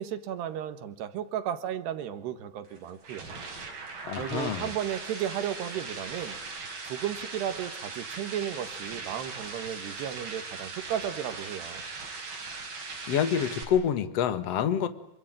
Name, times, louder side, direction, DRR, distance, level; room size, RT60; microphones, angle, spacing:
voice 1, 0.0-3.3 4.2-6.4 6.9-11.8, right 10 dB, 75° right, 11 dB, 3.6 m, -34 dB
sound 1, 2.6-13.6, right 4 dB, 60° right, 6.8 m, -39 dB
voice 2, 4.1-4.7 13.1-14.9, left 8 dB, 50° left, 12 dB, 2.0 m, -27 dB
27.0 x 24.0 x 9.0 m, 0.78 s
omnidirectional pair, 4.8 m